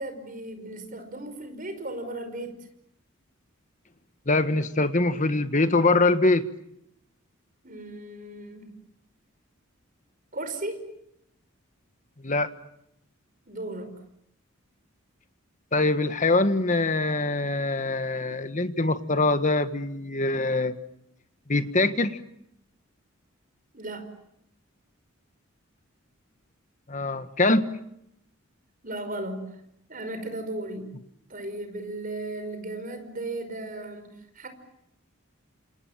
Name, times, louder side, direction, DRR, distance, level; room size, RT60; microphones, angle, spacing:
voice 1, 0.0-2.6 7.6-8.7 10.3-10.9 13.5-13.9 23.7-24.1 28.8-29.4 29.9-30.9 31.3-34.5, right 2 dB, 40° right, 8 dB, 5.3 m, -36 dB
voice 2, 4.3-6.4 12.2-12.5 15.7-20.7 21.5-22.2 26.9-27.7, left 2 dB, 35° left, 10 dB, 1.5 m, -23 dB
29.0 x 28.0 x 7.4 m, 0.78 s
head